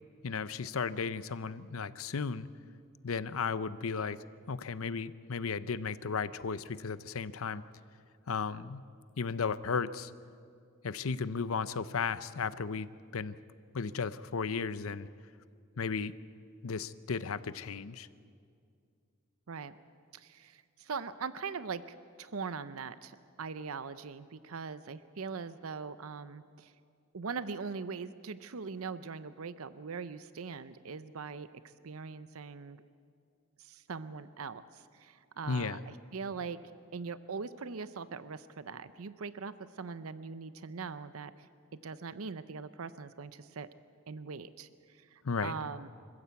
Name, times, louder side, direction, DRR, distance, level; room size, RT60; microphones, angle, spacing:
voice 1, 0.2-2.5 3.0-4.2 4.5-7.6 8.3-8.8 9.2-10.1 10.8-13.3 13.7-15.1 15.8-16.1 16.6-18.1 35.5-35.8 45.2-45.5, left 5 dB, 75° left, 15 dB, 0.7 m, -35 dB
voice 2, 20.1-26.7 27.1-31.5 31.8-32.8 33.6-36.6 36.9-41.5 41.8-43.7 44.1-45.9, right 5 dB, 80° right, 14 dB, 0.7 m, -41 dB
25.5 x 15.0 x 8.3 m, 2.3 s
head